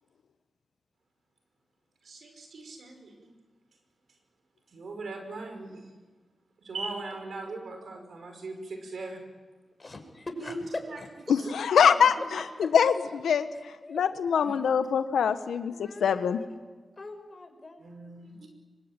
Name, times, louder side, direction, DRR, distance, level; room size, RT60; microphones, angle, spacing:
voice 1, 2.0-3.3 4.7-5.8 6.6-9.2 10.4-10.6 10.9-11.0 11.3-11.5 11.9-12.0 14.4-14.6 17.8-18.5, right 3 dB, 70° right, 5 dB, 5.6 m, -40 dB
voice 2, 9.8-10.5 11.0-11.1 12.3-12.4 13.5-14.2 15.7-16.5 17.0-18.1, left 2 dB, 40° left, 5 dB, 5.8 m, -43 dB
voice 3, 11.3-12.2 12.7-12.9 13.2-13.5 13.9-16.4, left 7 dB, 85° left, 10 dB, 1.2 m, -23 dB
24.0 x 23.5 x 9.1 m, 1.4 s
cardioid pair, 45°, 0 cm